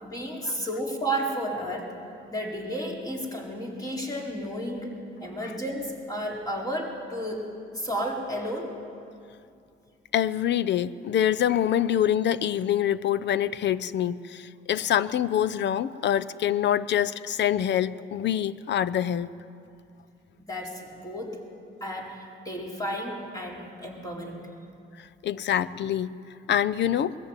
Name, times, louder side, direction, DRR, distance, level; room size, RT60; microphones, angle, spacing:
voice 1, 0.0-2.0 2.3-7.4 7.7-8.8 20.4-21.4 21.8-24.4, equal, 20° left, -2 dB, 4.4 m, -32 dB
voice 2, 10.1-19.3 25.2-26.2 26.5-27.2, left 10 dB, 60° left, 16 dB, 0.7 m, -25 dB
21.0 x 14.0 x 9.0 m, 2.5 s
cardioid pair, 90°, 20 cm